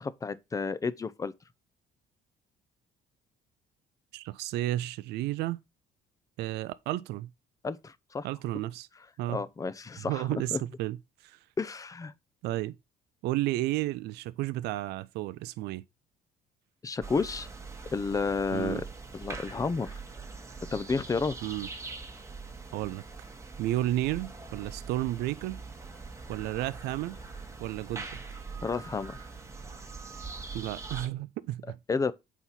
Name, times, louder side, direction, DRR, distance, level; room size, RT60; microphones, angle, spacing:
voice 1, 0.0-1.3 7.6-8.3 9.3-10.6 11.6-12.1 16.8-17.5 17.9-18.8 19.1-19.9 20.7-21.4 28.6-29.2 31.9-32.1, left 4 dB, 20° left, 0.5 m, -31 dB
voice 2, 4.1-5.6 6.4-7.3 8.2-8.9 9.2-9.4 10.0-11.0 11.2-11.4 12.4-12.7 13.2-15.8 18.5-18.8 21.4-21.7 22.7-23.0 23.6-25.6 26.3-27.2 27.6-28.1 30.5-31.8, right 15 dB, 80° right, 0.4 m, -32 dB
sound 1, 17.0-31.1, right 4 dB, 15° right, 1.1 m, -43 dB
4.5 x 4.1 x 5.6 m
cardioid pair, 110°, 17 cm